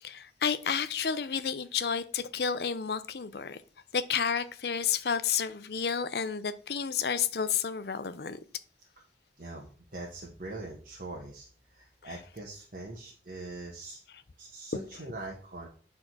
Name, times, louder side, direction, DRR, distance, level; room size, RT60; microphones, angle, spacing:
voice 1, 0.0-3.6 3.9-8.4, left 7 dB, 65° left, 0.6 m, -31 dB
voice 2, 9.4-14.0 14.4-15.7, right 2 dB, 50° right, 1.3 m, -42 dB
8.7 x 3.7 x 6.1 m
head